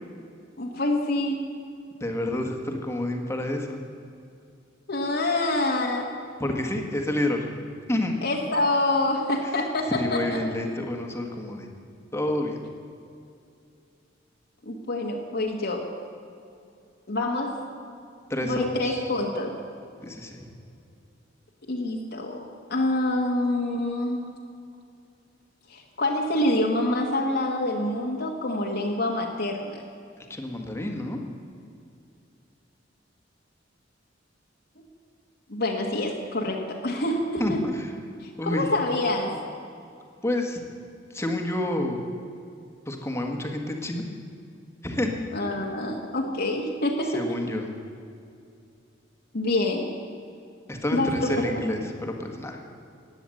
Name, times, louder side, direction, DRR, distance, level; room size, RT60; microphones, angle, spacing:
voice 1, 0.6-1.5 4.9-6.1 8.2-10.4 14.6-15.8 17.1-17.6 18.4-19.5 21.7-22.4 22.7-24.3 25.7-29.8 35.5-37.6 38.2-39.3 45.3-47.3 49.3-49.9 50.9-51.3, left 1 dB, 60° left, -1 dB, 1.6 m, -26 dB
voice 2, 2.0-3.8 6.4-7.6 7.9-8.2 9.4-9.5 9.9-11.7 12.1-12.6 18.3-19.0 20.0-20.4 30.2-31.2 37.4-37.9 38.4-38.7 40.2-40.6 41.1-42.0 42.9-44.0 44.8-45.1 47.1-47.7 50.7-52.6, left 1 dB, 15° left, 2 dB, 1.7 m, -29 dB
16.0 x 9.9 x 7.8 m, 2.5 s
head